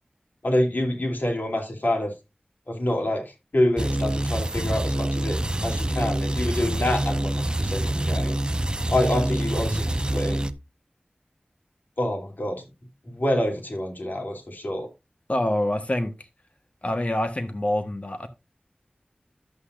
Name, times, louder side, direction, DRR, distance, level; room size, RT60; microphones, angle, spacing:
voice 1, 0.4-2.1 2.7-8.4 8.9-10.5 12.0-12.6 13.1-14.9, left 1 dB, 80° left, 2.9 m, -27 dB
sound 1, 3.8-10.5, right 1 dB, 30° right, 0.7 m, -26 dB
voice 2, 15.3-16.2 16.8-18.3, left 1 dB, 45° left, 1.4 m, -26 dB
11.0 x 8.2 x 2.6 m
wide cardioid pair, 50°, 3 cm